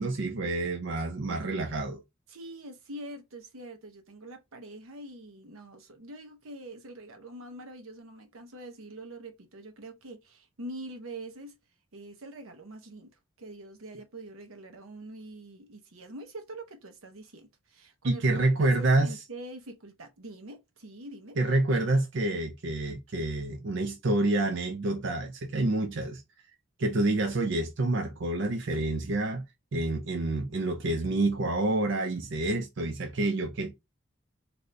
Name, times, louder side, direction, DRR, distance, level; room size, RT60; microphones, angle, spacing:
voice 1, 0.0-2.0 18.0-19.1 21.4-26.2 26.8-29.4 29.7-33.8, right 2 dB, 60° right, 0.5 m, -28 dB
voice 2, 2.3-11.6 11.9-13.1 13.4-18.2 18.6-21.4, right 1 dB, 90° right, 0.8 m, -44 dB
3.4 x 2.6 x 2.6 m
head